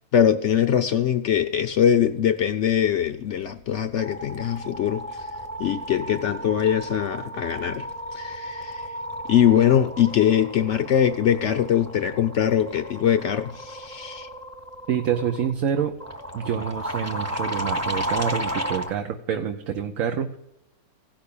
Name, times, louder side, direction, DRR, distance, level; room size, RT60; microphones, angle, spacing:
voice 1, 0.1-5.0 5.6-7.9 8.1-8.9 9.3-14.3, left 9 dB, 65° left, 8 dB, 0.9 m, -22 dB
sound 1, 3.1-3.4 3.7-18.9, equal, 15° right, 0.9 m, -34 dB
voice 2, 14.9-15.9 16.3-20.4, right 8 dB, 65° right, 6 dB, 1.1 m, -27 dB
16.0 x 6.0 x 8.5 m, 0.83 s
omnidirectional pair, 1.5 m